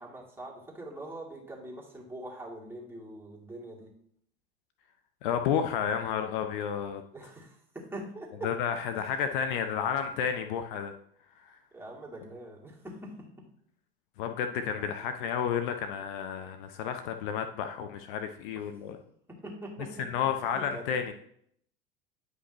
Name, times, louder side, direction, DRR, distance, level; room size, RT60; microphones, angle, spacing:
voice 1, 0.0-3.9 7.1-8.5 8.9-9.2 11.7-13.5 14.8-15.1 18.9-19.0 19.3-21.0, right 1 dB, 10° right, -3 dB, 2.3 m, -44 dB
voice 2, 5.2-7.0 8.4-10.9 11.4-11.6 14.2-19.0 20.0-21.1, left 8 dB, 60° left, 7 dB, 0.7 m, -31 dB
9.8 x 5.3 x 3.1 m, 0.67 s
figure-of-eight pair, 80°, 29 cm